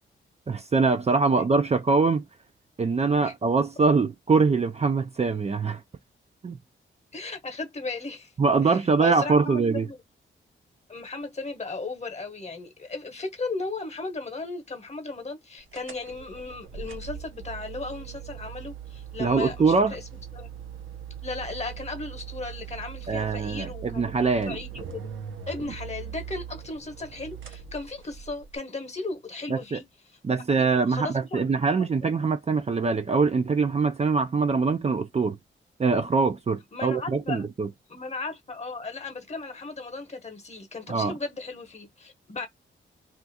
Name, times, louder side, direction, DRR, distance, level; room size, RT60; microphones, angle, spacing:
voice 1, 0.5-2.2 2.8-5.8 6.4-6.6 8.4-9.9 19.2-19.9 23.1-24.6 29.5-29.8 30.2-35.4 35.8-37.7 40.9-41.1, right 4 dB, 30° right, 0.4 m, -23 dB
voice 2, 7.1-8.3 8.6-10.0 10.9-20.0 20.3-20.5 21.2-24.2 24.4-25.1 25.5-29.8 30.3-31.5 31.7-31.9 36.7-37.5 37.9-42.5, left 3 dB, 30° left, 1.0 m, -36 dB
sound 1, 15.7-28.6, right 8 dB, 70° right, 0.8 m, -41 dB
2.5 x 2.4 x 4.1 m
cardioid pair, 75°, 21 cm